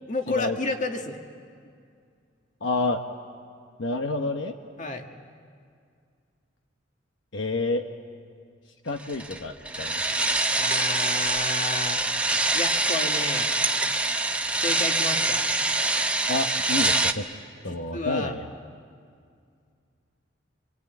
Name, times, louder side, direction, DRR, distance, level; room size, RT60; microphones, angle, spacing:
voice 1, 0.1-1.2 4.8-5.1 10.6-12.0 12.5-13.5 14.6-15.5 17.7-18.4, left 3 dB, 40° left, 4 dB, 1.9 m, -31 dB
voice 2, 2.6-3.0 3.8-4.6 7.3-7.8 8.8-10.0 16.3-17.3 17.6-18.4, left 2 dB, 70° left, 5 dB, 1.1 m, -28 dB
sound 1, 9.1-17.1, right 2 dB, 5° right, 0.9 m, -25 dB
26.0 x 25.0 x 9.3 m, 2.2 s
head